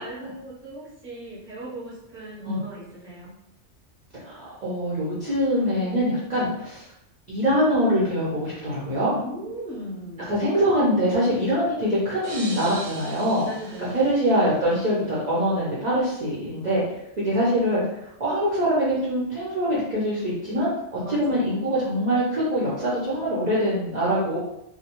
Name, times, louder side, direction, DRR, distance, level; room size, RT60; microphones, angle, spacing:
voice 1, 0.0-3.3 9.1-10.3 13.4-14.0 21.0-21.7, right 1 dB, 10° right, -7 dB, 0.7 m, -38 dB
voice 2, 4.2-6.9 7.3-9.1 10.3-13.5 13.9-16.8 17.2-17.8 18.2-24.4, equal, 45° right, -8 dB, 0.6 m, -24 dB
sound 1, 12.2-15.0, right 2 dB, 80° right, 1.0 m, -40 dB
2.2 x 2.1 x 2.8 m, 0.81 s
omnidirectional pair, 1.2 m